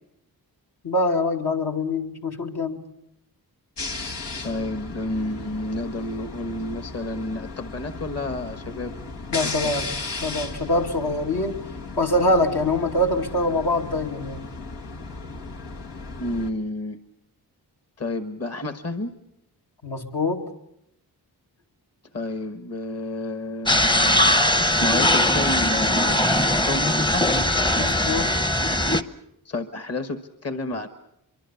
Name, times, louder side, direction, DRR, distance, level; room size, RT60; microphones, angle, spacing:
voice 1, 0.8-2.8 9.3-9.9 10.2-11.6 12.0-14.5 19.8-20.4 27.8-28.3, left 1 dB, 70° left, 2 dB, 2.6 m, -24 dB
sound 1, 3.8-16.5, left 3 dB, 90° left, 2.0 m, -35 dB
voice 2, 4.4-8.9 9.4-9.8 16.2-17.0 18.0-19.1 22.1-27.3 29.4-30.9, left 2 dB, 40° left, 9 dB, 1.4 m, -30 dB
sound 2, 23.7-29.0, left 1 dB, 10° left, 0.8 m, -20 dB
24.5 x 23.5 x 7.1 m, 0.81 s
wide cardioid pair, 105°, 40 cm